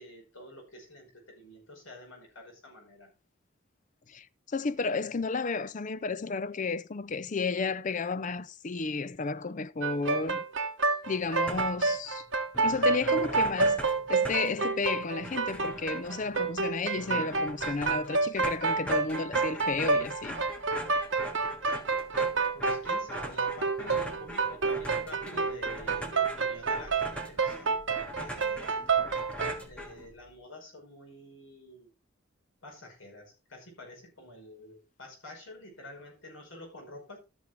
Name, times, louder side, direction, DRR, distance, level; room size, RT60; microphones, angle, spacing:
voice 1, 0.0-3.1 22.5-28.8 29.6-31.9 32.6-37.2, left 1 dB, 75° left, 5.3 m, -48 dB
voice 2, 4.1-10.4 11.1-12.2 12.6-13.8 14.1-20.4, left 4 dB, 40° left, 0.5 m, -32 dB
sound 1, 9.8-29.6, right 4 dB, 65° right, 1.4 m, -29 dB
sound 2, 11.3-12.0 12.3-12.4 12.5-30.4, equal, 5° left, 1.7 m, -42 dB
14.0 x 6.4 x 3.6 m
head